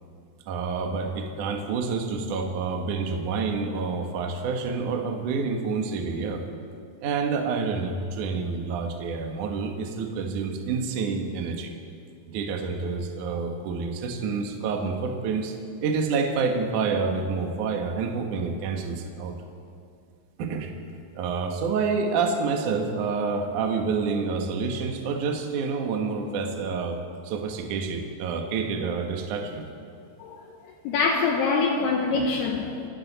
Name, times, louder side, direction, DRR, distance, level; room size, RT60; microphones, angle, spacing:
voice 1, 0.5-6.4 7.0-11.7 12.3-15.5 15.8-19.3 20.4-20.7 21.2-27.0 27.2-29.6, right 4 dB, 85° right, 3 dB, 1.7 m, -28 dB
voice 2, 30.8-32.9, left 4 dB, 75° left, 1 dB, 2.5 m, -24 dB
28.0 x 12.5 x 4.1 m, 2.3 s
omnidirectional pair, 5.9 m